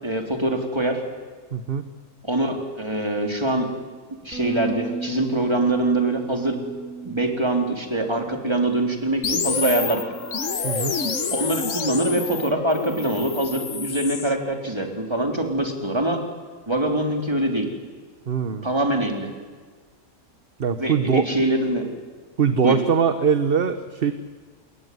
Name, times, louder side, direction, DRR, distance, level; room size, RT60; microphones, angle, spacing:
voice 1, 0.0-1.0 2.2-3.7 4.1-6.6 7.0-10.1 11.3-16.2 16.7-17.7 18.6-19.3 20.8-21.9 22.6-22.8, right 1 dB, 20° right, 3 dB, 3.9 m, -24 dB
voice 2, 1.5-1.9 10.6-11.0 18.3-18.7 20.6-21.2 22.4-24.1, right 6 dB, 45° right, 10 dB, 1.2 m, -22 dB
Bass guitar, 4.3-10.6, right 5 dB, 80° right, 4.5 m, -35 dB
sound 1, 9.2-14.3, left 5 dB, 65° left, 1.8 m, -28 dB
27.5 x 21.5 x 9.6 m, 1.5 s
omnidirectional pair, 1.4 m